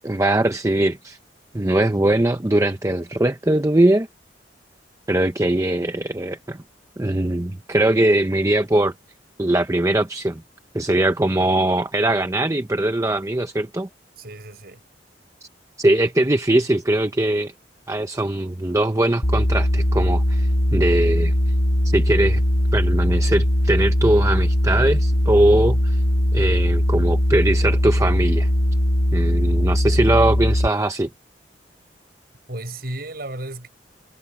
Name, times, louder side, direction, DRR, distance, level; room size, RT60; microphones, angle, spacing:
voice 1, 0.0-1.2 1.5-4.1 5.1-6.6 7.0-8.9 9.4-10.4 10.7-13.9 15.8-17.5 17.9-21.3 21.9-22.4 22.7-26.0 26.3-28.5 29.1-31.1, right 1 dB, 15° right, 0.7 m, -21 dB
voice 2, 14.2-14.8 32.5-33.7, right 1 dB, 55° right, 7.2 m, -33 dB
sound 1, 19.2-30.7, left 1 dB, 80° left, 2.1 m, -20 dB
head